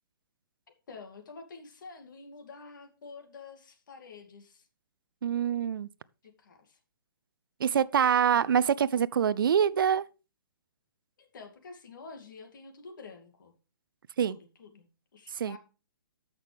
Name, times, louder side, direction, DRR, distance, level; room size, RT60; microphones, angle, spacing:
voice 1, 0.9-4.7 6.4-6.8 8.1-8.2 11.2-13.5 14.2-15.6, left 4 dB, 60° left, 2.5 m, -48 dB
voice 2, 5.2-5.9 7.6-10.0 14.2-14.4 15.4-15.6, right 8 dB, 75° right, 0.5 m, -25 dB
13.0 x 6.1 x 3.4 m
hypercardioid pair, 160°, 12 cm